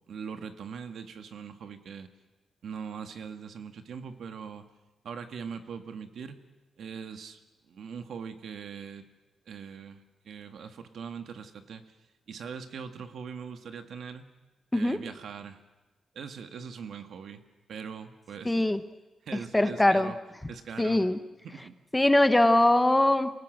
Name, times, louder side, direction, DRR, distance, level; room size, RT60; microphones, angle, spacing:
voice 1, 0.1-2.1 2.6-4.6 5.0-6.4 6.8-7.4 7.7-9.0 9.5-11.8 12.3-14.2 14.7-15.6 16.1-17.4 17.7-18.7 19.2-20.2 20.5-21.0 21.4-21.8, right 6 dB, 65° right, 8 dB, 1.7 m, -41 dB
voice 2, 18.4-18.8 19.5-20.1 20.8-21.2 21.9-23.3, left 1 dB, 10° left, 11 dB, 0.9 m, -22 dB
27.5 x 18.5 x 7.9 m, 1.1 s
wide cardioid pair, 150°, 0 cm